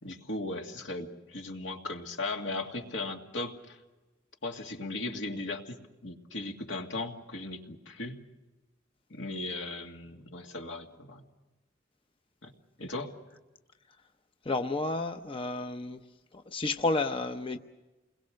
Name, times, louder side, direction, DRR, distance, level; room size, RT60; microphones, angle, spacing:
voice 1, 0.0-3.8 4.4-5.8 6.0-8.2 9.1-11.2 12.4-12.5 12.8-13.1, left 2 dB, 75° left, 3 dB, 2.3 m, -37 dB
voice 2, 14.4-16.0 16.3-17.6, left 2 dB, 30° left, 6 dB, 0.8 m, -31 dB
29.0 x 21.5 x 6.5 m, 1.1 s
head